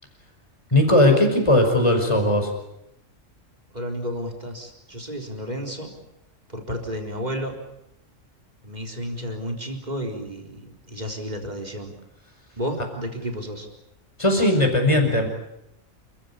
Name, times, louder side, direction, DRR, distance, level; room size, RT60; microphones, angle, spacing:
voice 1, 0.7-2.5 14.2-15.3, left 1 dB, 20° left, 3 dB, 5.3 m, -18 dB
voice 2, 3.7-5.9 6.5-7.6 8.6-11.9 12.6-13.7, equal, 30° right, 2 dB, 4.1 m, -32 dB
29.5 x 15.0 x 9.8 m, 0.84 s
omnidirectional pair, 1.4 m